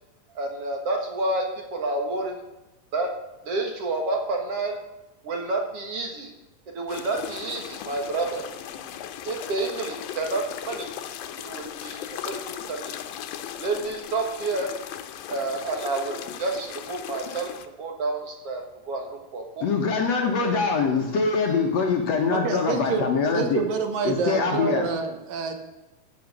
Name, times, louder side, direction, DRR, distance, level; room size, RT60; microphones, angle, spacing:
voice 1, 0.4-2.4 2.9-3.1 3.4-4.8 5.2-6.3 6.7-8.4 9.3-10.9 11.4-12.4 12.7-13.0 13.6-14.7 15.3-17.5 17.8-19.7 20.4-20.5, right 2 dB, 50° right, 3 dB, 2.2 m, -29 dB
sound 1, 6.9-17.7, left 10 dB, 85° left, 2.7 m, -37 dB
voice 2, 19.6-23.7 24.0-24.9, left 5 dB, 60° left, 2 dB, 2.2 m, -23 dB
voice 3, 22.3-23.1 23.3-25.6, right 6 dB, 75° right, 6 dB, 3.0 m, -27 dB
15.0 x 7.2 x 7.0 m, 1.0 s
omnidirectional pair, 4.1 m